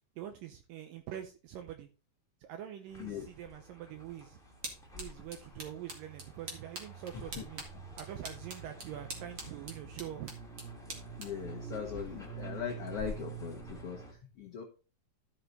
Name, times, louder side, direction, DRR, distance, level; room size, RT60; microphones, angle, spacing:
voice 1, 0.2-1.9 2.4-4.4 4.9-7.6 8.0-10.3, right 11 dB, 75° right, 6 dB, 2.4 m, -44 dB
sound 1, 2.9-14.1, right 3 dB, ahead, 1.4 m, -47 dB
sound 2, 4.0-12.7, right 2 dB, 40° right, 2.3 m, -48 dB
voice 2, 11.2-14.6, left 8 dB, 70° left, 1 dB, 1.4 m, -40 dB
12.5 x 5.7 x 4.0 m, 0.33 s
omnidirectional pair, 4.2 m